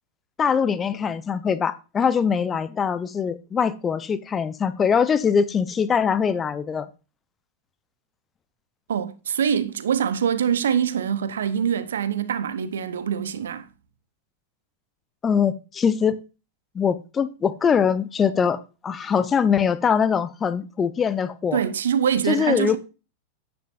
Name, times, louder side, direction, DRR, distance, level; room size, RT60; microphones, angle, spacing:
voice 1, 0.4-6.9 15.2-16.2 16.7-21.6 22.3-22.8, left 6 dB, 20° left, 0.7 m, -22 dB
voice 2, 8.9-13.7 21.5-22.8, right 8 dB, 65° right, 0.9 m, -24 dB
10.0 x 9.6 x 2.6 m
figure-of-eight pair, 90°, 0 cm